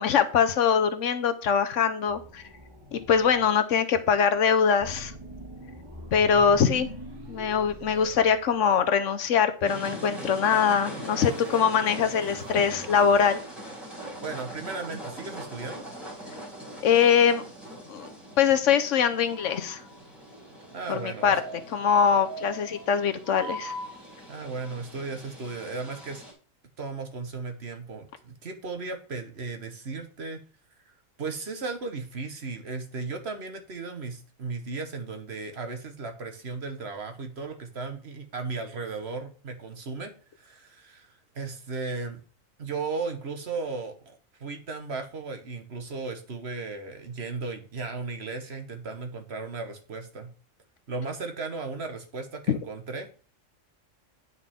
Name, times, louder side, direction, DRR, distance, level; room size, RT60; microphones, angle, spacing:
voice 1, 0.0-2.4 2.9-5.1 6.1-6.9 7.3-13.4 16.8-17.4 17.9-18.1 18.4-19.8 20.9-21.4 21.7-23.7 52.5-52.6, left 7 dB, 70° left, 10 dB, 1.1 m, -23 dB
sound 1, 2.1-3.5 4.8-9.0 10.8-11.7 12.1-13.2, equal, 15° right, 2.0 m, -43 dB
sound 2, 9.6-26.3, right 1 dB, ahead, 3.2 m, -41 dB
voice 2, 14.2-15.9 20.7-21.4 24.3-26.2 26.8-30.4 31.2-42.2 42.6-50.3 50.9-53.1, right 4 dB, 55° right, 6 dB, 1.5 m, -36 dB
9.7 x 5.9 x 3.6 m, 0.39 s
omnidirectional pair, 1.4 m